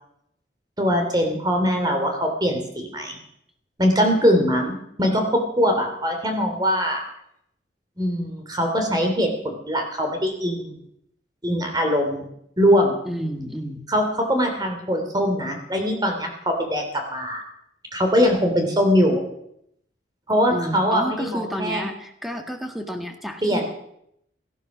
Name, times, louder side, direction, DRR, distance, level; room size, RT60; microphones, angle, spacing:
voice 1, 0.8-3.2 3.8-7.0 8.0-10.8 11.4-12.3 12.6-12.9 13.9-17.4 17.9-19.2 20.3-21.8 23.4-23.6, equal, 25° right, 4 dB, 3.0 m, -22 dB
voice 2, 13.0-13.9 20.5-23.6, equal, ahead, 5 dB, 1.7 m, -31 dB
17.0 x 13.0 x 6.1 m, 0.75 s
head